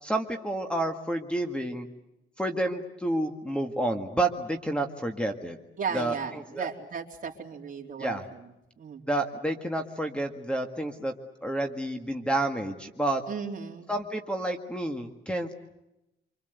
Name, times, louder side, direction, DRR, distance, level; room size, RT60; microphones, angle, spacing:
voice 1, 0.0-1.9 2.4-5.6 5.9-6.7 8.0-8.2 9.1-11.1 11.4-13.2 13.9-15.6, right 1 dB, 5° left, 5 dB, 1.9 m, -30 dB
voice 2, 5.8-8.4 8.8-9.0 13.3-13.9, right 6 dB, 45° right, -1 dB, 3.7 m, -35 dB
26.5 x 26.0 x 8.2 m, 0.92 s
cardioid pair, 130°, 20 cm